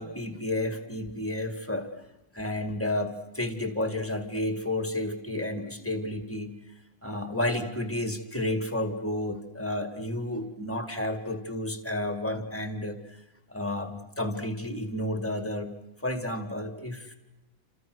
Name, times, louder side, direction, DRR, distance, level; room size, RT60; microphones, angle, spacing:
voice 1, 0.0-1.9 2.3-6.6 7.0-13.2 13.5-15.7 16.0-17.1, left 1 dB, 10° left, 7 dB, 2.0 m, -31 dB
28.5 x 27.0 x 6.3 m, 0.97 s
omnidirectional pair, 1.4 m